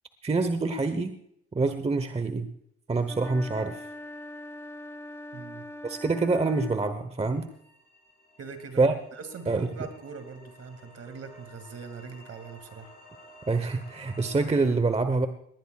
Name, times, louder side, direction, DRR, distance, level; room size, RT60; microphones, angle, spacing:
voice 1, 0.2-1.1 1.5-2.5 2.9-3.8 5.8-7.5 8.8-8.9 9.5-9.7 13.5-15.3, right 3 dB, 20° right, 9 dB, 1.0 m, -26 dB
sound 1, 3.0-7.0, left 1 dB, 10° left, 0.8 m, -42 dB
voice 2, 5.3-5.6 8.4-12.9, right 5 dB, 55° right, 8 dB, 2.4 m, -42 dB
sound 2, 7.3-14.6, equal, 30° left, 6.8 m, -53 dB
19.5 x 18.5 x 2.4 m, 0.74 s
cardioid pair, 90°, 30 cm